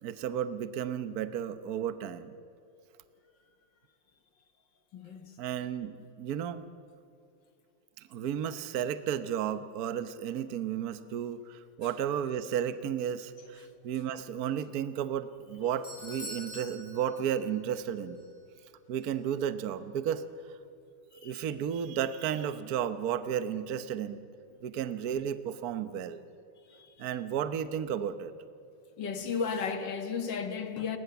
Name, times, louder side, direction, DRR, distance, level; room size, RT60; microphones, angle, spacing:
voice 1, 0.0-2.4 5.4-6.7 8.1-18.2 18.9-20.2 21.2-24.2 24.6-26.2 27.0-28.3, right 9 dB, 55° right, 1.2 m, -33 dB
voice 2, 4.9-5.3 21.2-21.4 26.7-27.1 29.0-31.0, left 6 dB, 60° left, 2.1 m, -34 dB
Doorbell, 15.4-17.9 18.1-18.2 19.0-19.1, equal, 25° left, 7.7 m, -45 dB
28.5 x 21.0 x 7.0 m
omnidirectional pair, 2.3 m